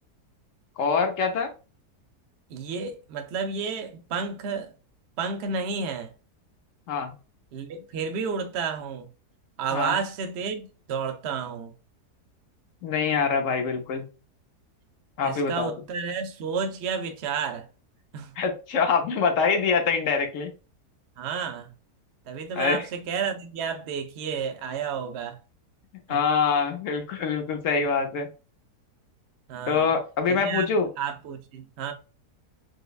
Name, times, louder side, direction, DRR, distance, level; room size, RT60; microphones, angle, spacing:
voice 1, 0.8-1.5 6.9-7.1 9.7-10.0 12.8-14.0 15.2-15.7 18.4-20.5 22.6-22.9 26.1-28.3 29.7-30.9, left 5 dB, 65° left, 0.9 m, -25 dB
voice 2, 2.5-4.7 5.2-6.1 7.5-9.1 9.6-11.7 15.2-17.7 18.1-18.3 21.2-21.7 22.3-25.4 26.1-26.2 29.5-29.9 30.3-31.9, right 6 dB, 70° right, 0.6 m, -31 dB
4.8 x 2.2 x 2.3 m
omnidirectional pair, 1.7 m